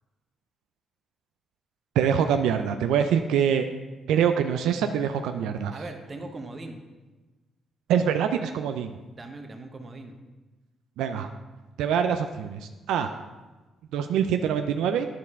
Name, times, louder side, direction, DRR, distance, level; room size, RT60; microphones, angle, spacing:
voice 1, 2.0-3.7 4.1-5.7 7.9-9.0 11.0-11.3 11.8-12.6 12.9-13.1 13.9-15.1, right 8 dB, 90° right, 7 dB, 0.3 m, -24 dB
voice 2, 5.7-6.8 9.1-10.2, right 2 dB, 30° right, 4 dB, 1.0 m, -39 dB
10.0 x 4.6 x 3.6 m, 1.2 s
cardioid pair, 90°, 0 cm